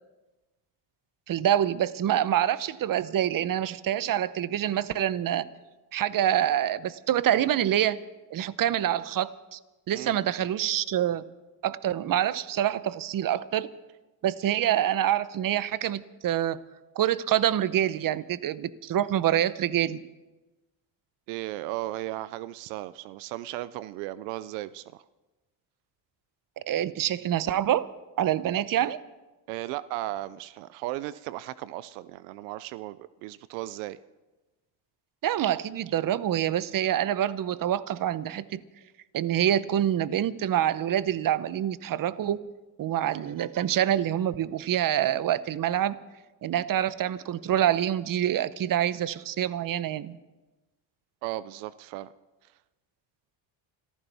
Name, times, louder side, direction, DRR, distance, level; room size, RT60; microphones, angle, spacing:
voice 1, 1.3-5.4 5.9-8.0 8.3-9.6 9.9-11.2 11.6-13.7 14.2-16.6 16.9-20.0 26.6-27.9 28.2-29.0 35.2-38.6 39.1-42.4 42.8-46.0 46.4-50.2, right 11 dB, 45° right, 16 dB, 0.8 m, -26 dB
voice 2, 21.3-25.0 29.5-34.0 51.2-52.1, right 15 dB, 90° right, 17 dB, 0.6 m, -36 dB
26.0 x 14.5 x 3.5 m, 1.1 s
supercardioid pair, 80°, 49 cm